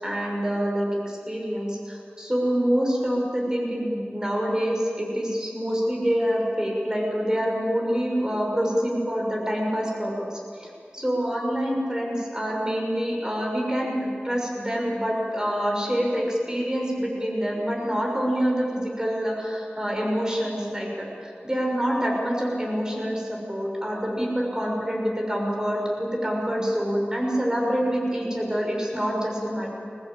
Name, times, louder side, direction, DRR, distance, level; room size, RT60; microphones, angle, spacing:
voice 1, 0.0-29.7, equal, 20° right, -1 dB, 6.4 m, -26 dB
22.5 x 19.5 x 8.9 m, 2.4 s
wide cardioid pair, 50°, 4 cm